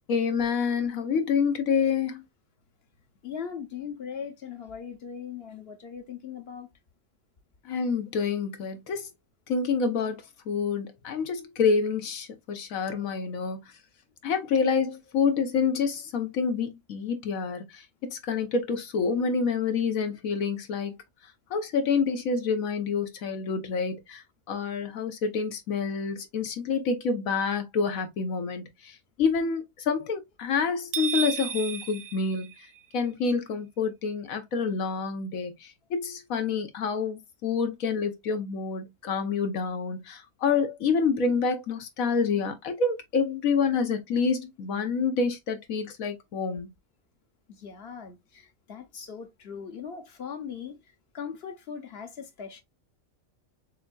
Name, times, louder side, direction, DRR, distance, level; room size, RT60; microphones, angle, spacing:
voice 1, 0.1-2.2 7.6-9.1 9.5-13.6 14.2-20.9 21.5-24.2 24.5-32.5 32.9-46.7, left 5 dB, 90° left, 1.4 m, -28 dB
voice 2, 3.2-6.7 20.0-20.1 47.6-50.8 51.1-52.6, left 7 dB, 55° left, 0.9 m, -39 dB
sound 1, 30.9-33.1, right 7 dB, 65° right, 0.9 m, -33 dB
6.4 x 2.7 x 2.3 m
omnidirectional pair, 1.4 m